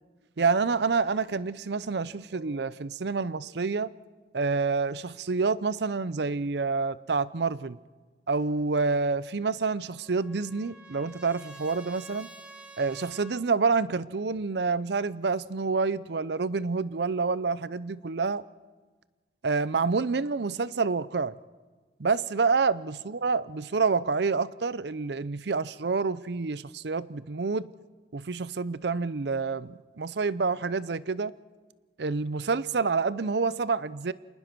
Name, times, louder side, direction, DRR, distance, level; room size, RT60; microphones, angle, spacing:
voice 1, 0.4-3.9 4.3-7.8 8.3-12.3 12.8-18.4 19.4-21.4 22.0-27.7 28.1-31.3 32.0-34.1, right 4 dB, 65° right, 0.6 m, -28 dB
Trumpet, 9.6-13.4, right 1 dB, 5° right, 1.7 m, -49 dB
27.0 x 19.5 x 6.1 m
head